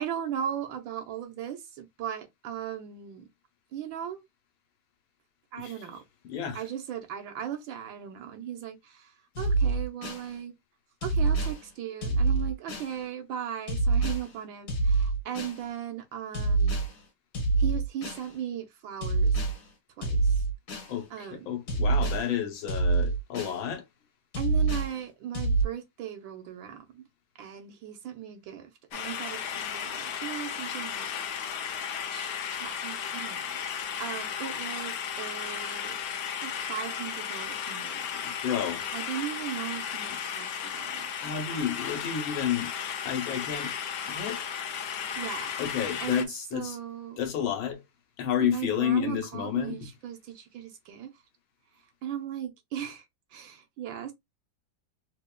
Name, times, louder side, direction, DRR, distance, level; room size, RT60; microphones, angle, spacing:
voice 1, 0.0-3.2 3.7-4.2 5.5-6.0 6.5-10.5 11.0-16.8 17.6-19.4 20.0-20.3 21.1-21.5 24.3-27.0 27.4-31.1 32.1-33.5 34.0-36.0 36.4-38.1 38.9-41.7 45.2-45.5 46.0-47.2 48.4-51.1 52.0-53.0 53.3-54.1, right 9 dB, 75° right, 1.6 m, -37 dB
voice 2, 6.3-6.6 20.9-23.8 38.1-38.8 41.2-42.7 43.0-43.7 44.1-44.4 45.6-46.8 47.2-47.8 48.2-49.9, left 9 dB, 90° left, 1.7 m, -30 dB
sound 1, 9.4-10.3 11.0-11.6 12.0-12.9 13.7-14.3 14.7-15.6 16.3-16.9 17.3-18.3 19.0-19.6 20.0-20.9 21.7-22.2 22.7-23.6 24.3-24.9 25.3-25.6, right 3 dB, 50° left, 1.6 m, -26 dB
sound 2, 28.9-46.2, left 8 dB, 70° left, 0.9 m, -35 dB
4.3 x 2.9 x 2.2 m
omnidirectional pair, 2.1 m